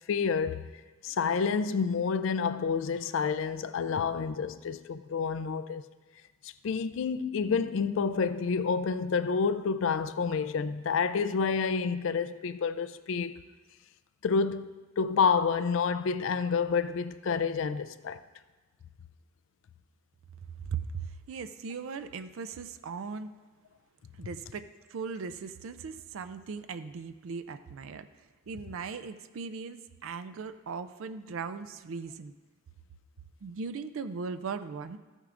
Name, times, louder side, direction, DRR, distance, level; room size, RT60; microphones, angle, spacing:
voice 1, 0.1-0.7 1.0-5.8 6.4-13.4 14.2-18.2, left 5 dB, 60° left, 0.4 m, -29 dB
voice 2, 20.7-23.3 24.2-32.3 33.4-35.0, right 5 dB, 70° right, 0.4 m, -38 dB
14.0 x 8.9 x 2.5 m
head